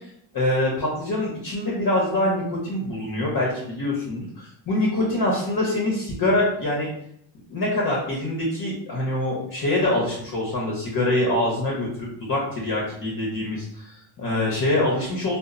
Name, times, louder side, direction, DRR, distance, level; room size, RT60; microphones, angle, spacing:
voice 1, 0.3-6.9 7.5-15.4, left 1 dB, 45° left, -3 dB, 0.7 m, -24 dB
2.0 x 2.0 x 3.6 m, 0.70 s
cardioid pair, 110°, 48 cm